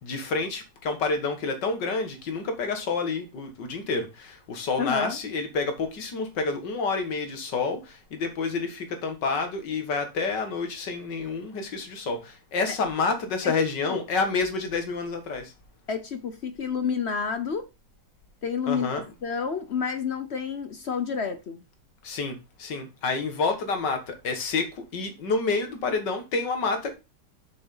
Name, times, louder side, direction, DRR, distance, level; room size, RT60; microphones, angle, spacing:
voice 1, 0.0-15.5 18.7-19.1 22.0-26.9, left 4 dB, 75° left, 2.3 m, -29 dB
voice 2, 4.8-5.2 13.4-13.5 13.9-14.0 15.9-17.7 18.4-21.6, left 6 dB, 55° left, 0.7 m, -29 dB
7.0 x 6.7 x 3.9 m
omnidirectional pair, 1.9 m